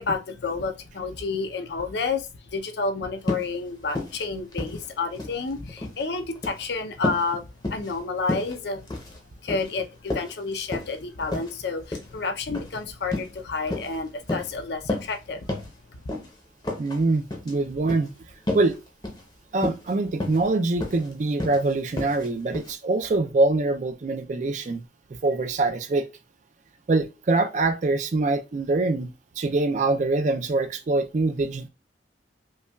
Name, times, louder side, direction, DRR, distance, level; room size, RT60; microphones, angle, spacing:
voice 1, 0.0-8.8 9.4-15.5 15.9-16.0, left 4 dB, 65° left, 0.5 m, -30 dB
sound 1, 3.2-3.5 3.9-4.2 4.5-5.4 5.7-6.0 6.4-6.6 7.0-7.3 7.6-8.0 8.3-8.5 8.9-9.2 9.5-9.7 10.1-10.9 11.3-11.5 11.9-12.1 12.5-12.7 13.1-13.3 13.7-14.0 14.3-14.5 14.9-15.2 15.5-15.7 16.1-16.3 16.6-17.0 17.3-17.5 17.9-18.1 18.5-18.7 19.0-19.2 19.6-19.9 20.2-20.5 20.8-21.1 21.4-21.6 22.0-22.3 22.5-22.7, left 2 dB, 25° left, 0.7 m, -31 dB
voice 2, 16.8-18.1 18.5-18.8 19.5-24.8 25.2-26.0 26.9-29.1 29.4-31.7, right 2 dB, 40° right, 0.4 m, -24 dB
5.3 x 2.3 x 2.3 m
head